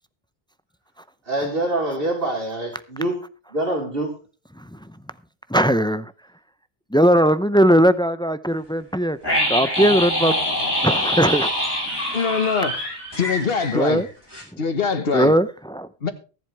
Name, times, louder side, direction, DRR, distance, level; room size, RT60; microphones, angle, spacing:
voice 1, 1.3-3.2 3.5-4.1, right 1 dB, 65° right, 4.2 m, -25 dB
voice 2, 5.5-6.1 6.9-9.2 9.5-10.4 10.8-11.5 13.7-14.1 15.1-15.9, equal, 5° left, 0.4 m, -19 dB
sound 1, 9.2-14.1 14.3-14.4, left 1 dB, 20° left, 5.9 m, -24 dB
voice 3, 12.1-12.8 13.2-14.0 14.6-15.3 16.0-16.1, left 5 dB, 65° left, 1.6 m, -23 dB
23.5 x 7.8 x 3.3 m
omnidirectional pair, 1.0 m